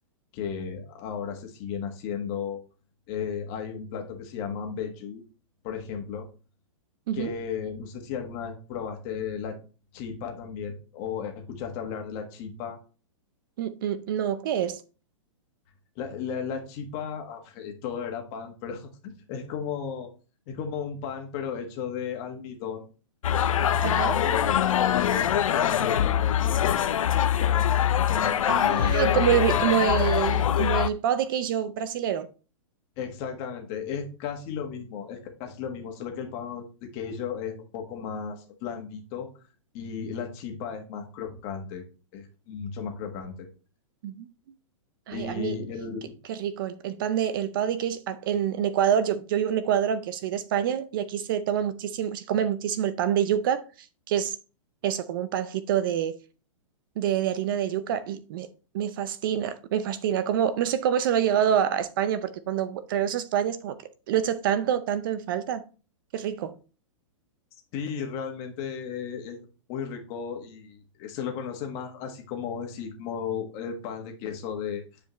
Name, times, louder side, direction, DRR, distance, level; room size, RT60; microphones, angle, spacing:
voice 1, 0.3-2.6 3.1-5.2 5.6-6.2 7.1-9.6 9.9-12.8 15.9-20.1 20.5-22.8 24.1-26.9 27.4-27.7 28.0-29.7 33.0-39.3 39.7-41.8 42.1-43.5 45.1-46.2 67.7-74.8, left 7 dB, 30° left, 1.5 m, -35 dB
voice 2, 13.6-14.8 23.8-24.2 28.5-32.3 44.0-44.3 45.1-45.6 46.3-53.6 54.1-54.3 54.8-56.2 57.0-58.5 58.7-63.8 64.1-65.6 66.1-66.6, right 9 dB, 40° right, 0.5 m, -26 dB
sound 1, 23.2-30.9, left 10 dB, 90° left, 0.6 m, -23 dB
9.3 x 5.0 x 3.0 m
hypercardioid pair, 160°, 17 cm